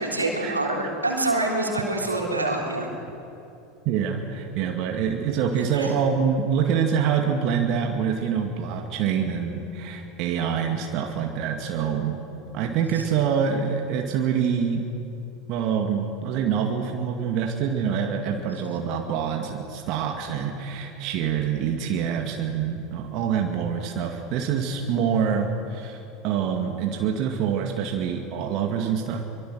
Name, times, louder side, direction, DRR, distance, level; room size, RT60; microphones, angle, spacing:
voice 1, 0.0-2.9 5.7-5.9, right 2 dB, 85° right, 0 dB, 3.6 m, -26 dB
voice 2, 3.9-12.2 12.5-14.9 15.5-29.2, right 7 dB, 50° right, 3 dB, 2.1 m, -26 dB
25.5 x 23.5 x 6.4 m, 2.8 s
figure-of-eight pair, 75°, 0 cm